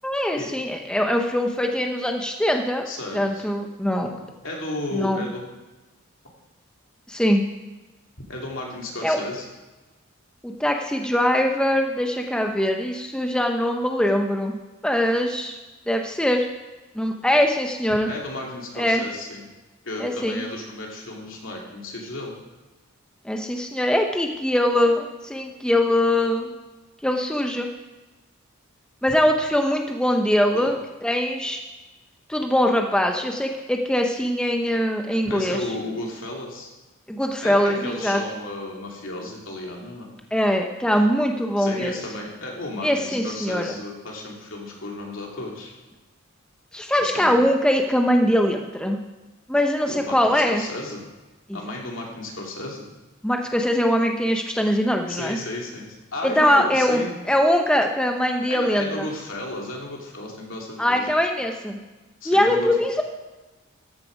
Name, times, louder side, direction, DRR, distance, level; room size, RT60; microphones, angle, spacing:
voice 1, 0.0-2.9 3.1-4.1 4.9-5.3 7.1-7.4 9.0-9.2 10.4-14.6 14.8-15.6 15.9-16.5 16.9-18.1 18.8-19.0 20.0-20.4 23.2-26.5 27.0-27.7 29.0-30.8 31.0-31.6 32.3-35.7 37.1-38.2 40.3-41.9 42.8-43.7 46.7-49.0 49.5-50.6 51.5-51.6 53.2-55.4 56.2-57.0 57.3-59.1 60.8-61.8 62.3-63.0, equal, 5° left, 3 dB, 0.6 m, -22 dB
voice 2, 2.9-3.5 4.0-5.4 8.3-9.5 18.0-19.4 19.8-22.3 30.5-30.7 35.2-36.7 37.4-40.1 41.6-45.7 47.0-47.4 49.9-51.0 51.5-52.8 55.1-57.1 58.5-61.1 62.2-62.7, left 2 dB, 65° left, -1 dB, 2.7 m, -33 dB
14.0 x 7.3 x 5.1 m, 1.2 s
head